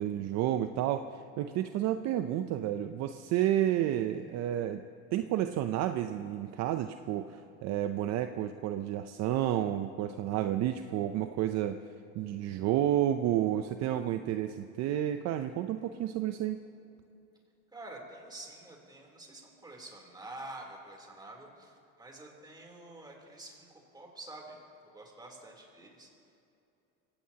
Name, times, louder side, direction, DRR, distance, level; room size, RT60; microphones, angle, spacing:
voice 1, 0.0-4.8 5.1-11.8 12.1-16.6, right 12 dB, 50° right, 8 dB, 0.6 m, -31 dB
voice 2, 17.7-26.1, right 2 dB, 10° right, 0 dB, 3.3 m, -48 dB
24.0 x 17.0 x 2.9 m, 2.8 s
supercardioid pair, 125°, 33 cm